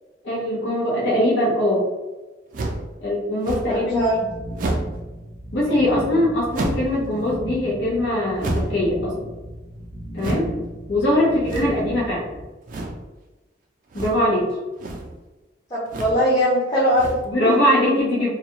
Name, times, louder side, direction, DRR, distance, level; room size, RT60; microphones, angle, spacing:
voice 1, 0.2-1.9 3.0-4.1 5.5-9.1 10.1-10.5 10.9-12.2 13.9-14.5 17.3-18.3, left 1 dB, 85° left, -5 dB, 0.8 m, -21 dB
sound 1, 2.5-2.9 3.4-3.8 4.5-5.0 6.5-7.0 8.4-8.9 10.2-10.5 11.4-11.9 12.7-13.0 13.9-14.3 14.7-15.1 15.9-16.2 16.9-17.4, right 2 dB, 45° right, 0.3 m, -29 dB
voice 2, 3.6-4.1 11.5-11.7 15.7-17.1 17.4-17.6, equal, 20° left, -8 dB, 0.6 m, -21 dB
sound 2, 3.9-12.4, right 1 dB, 55° left, 1.2 m, -36 dB
2.3 x 2.3 x 2.8 m, 1.2 s
head